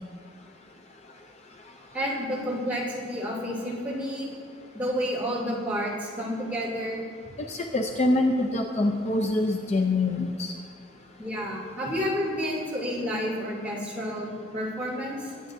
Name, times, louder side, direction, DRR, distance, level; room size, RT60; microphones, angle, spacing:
voice 1, 1.9-4.3 4.7-7.0 11.2-15.3, equal, 10° right, -6 dB, 2.7 m, -30 dB
voice 2, 7.5-10.5, left 2 dB, 35° left, 3 dB, 0.5 m, -25 dB
22.5 x 9.4 x 2.7 m, 2.1 s
head